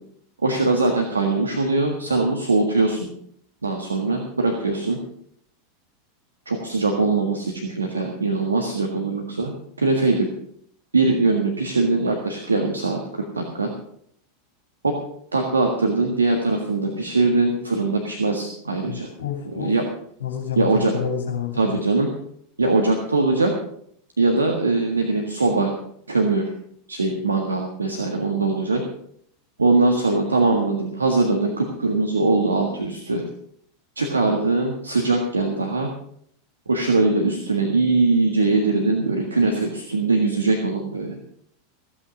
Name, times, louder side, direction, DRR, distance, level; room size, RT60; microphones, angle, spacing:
voice 1, 0.4-3.1 3.6-5.0 6.4-10.3 10.9-13.7 14.8-15.0 15.3-19.1 19.4-19.9 20.6-21.0 21.6-22.1 22.6-23.5 24.2-25.8 26.1-26.5 26.9-28.8 29.6-33.2 34.0-35.9 36.7-41.2, right 3 dB, 90° right, 3 dB, 1.6 m, -21 dB
voice 2, 18.9-19.7 20.2-21.6, left 7 dB, 75° left, 0 dB, 3.1 m, -28 dB
15.5 x 8.8 x 6.3 m, 0.66 s
figure-of-eight pair, 90°, 0 cm